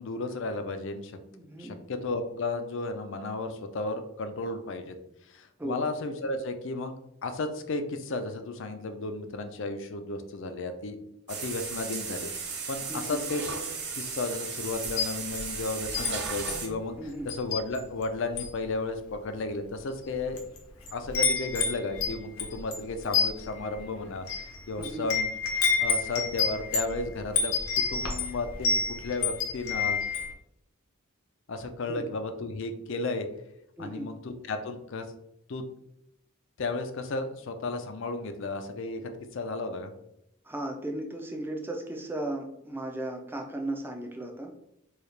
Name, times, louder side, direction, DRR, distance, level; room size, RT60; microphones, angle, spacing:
voice 1, 0.0-1.1 1.6-4.9 5.3-11.0 11.3-12.3 12.7-13.5 13.9-17.0 17.2-20.4 20.9-25.3 25.8-30.0 31.5-33.3 33.8-35.0 35.5-35.6 36.6-39.9, left 3 dB, 60° left, 7 dB, 0.5 m, -34 dB
voice 2, 1.3-1.8 5.6-5.8 12.9-13.2 17.0-17.3 24.8-25.1 31.9-32.0 33.8-34.1 40.4-44.5, right 1 dB, 10° right, 2 dB, 0.4 m, -36 dB
sound 1, 11.3-16.7, right 5 dB, 50° right, 0.8 m, -35 dB
Wind chime, 14.8-16.1 16.5-16.7 17.3-18.0 18.3-18.6 19.3-19.4 20.1-20.6 20.8-30.3, left 5 dB, 85° left, 0.9 m, -29 dB
4.6 x 2.4 x 3.2 m, 0.79 s
head